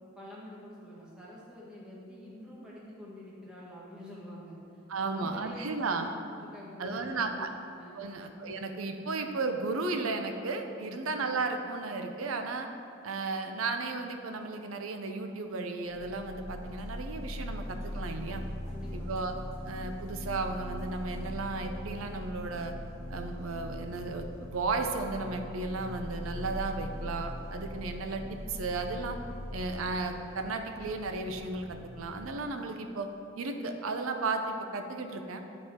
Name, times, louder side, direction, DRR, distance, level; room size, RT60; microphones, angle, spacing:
voice 1, 0.1-4.6 5.0-6.0 6.4-7.5 7.8-8.1 10.8-11.1 18.7-19.1, left 1 dB, 5° right, -7 dB, 1.5 m, -47 dB
voice 2, 4.9-6.1 6.8-7.5 7.9-12.7 13.0-18.4 18.9-19.4 19.7-22.7 23.1-29.2 29.5-33.1 33.4-35.4, right 3 dB, 85° right, 6 dB, 0.6 m, -34 dB
sound 1, 15.9-32.4, left 1 dB, 35° left, 1.7 m, -41 dB
10.0 x 4.3 x 3.7 m, 2.7 s
head